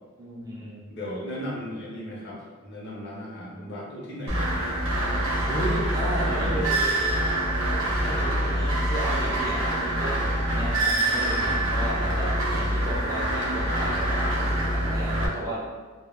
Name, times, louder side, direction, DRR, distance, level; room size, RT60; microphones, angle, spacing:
voice 1, 0.2-0.8 5.5-6.9 8.0-15.6, right 1 dB, 15° right, -5 dB, 0.4 m, -34 dB
voice 2, 0.9-5.5 6.0-6.6, equal, 55° left, -4 dB, 0.6 m, -37 dB
sound 1, 4.3-15.3, right 1 dB, 65° right, 0.7 m, -25 dB
2.2 x 2.1 x 3.2 m, 1.4 s
head